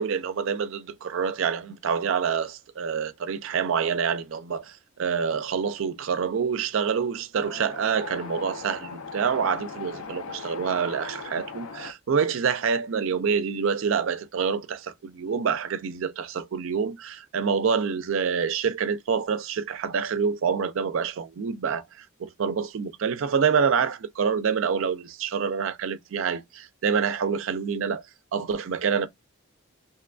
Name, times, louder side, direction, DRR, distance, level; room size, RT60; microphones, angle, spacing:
voice 1, 0.0-28.0 28.3-29.1, right 6 dB, 65° right, 0.4 m, -27 dB
Wind, 7.3-11.9, left 4 dB, 85° left, 0.5 m, -39 dB
2.8 x 2.2 x 2.3 m
head